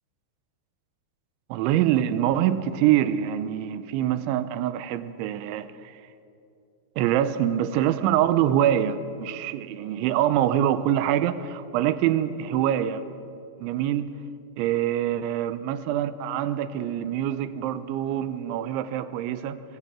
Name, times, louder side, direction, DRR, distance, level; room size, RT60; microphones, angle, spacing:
voice 1, 1.5-5.7 7.0-13.1 13.6-14.1 14.6-19.6, right 11 dB, 90° right, 3.2 m, -25 dB
25.0 x 20.5 x 7.4 m
omnidirectional pair, 5.2 m